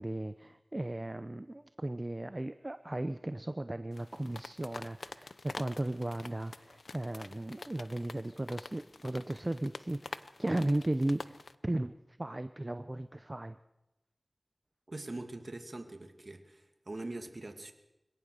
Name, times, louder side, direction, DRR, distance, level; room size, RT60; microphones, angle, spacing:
voice 1, 0.0-11.4 11.6-11.9 12.2-13.6, right 1 dB, 35° right, 11 dB, 0.7 m, -36 dB
sound 1, 3.9-11.6, left 3 dB, 85° left, 0.7 m, -47 dB
voice 2, 14.9-17.7, right 2 dB, 50° right, 6 dB, 2.5 m, -43 dB
24.5 x 18.0 x 6.7 m, 0.94 s
wide cardioid pair, 40°, 0 cm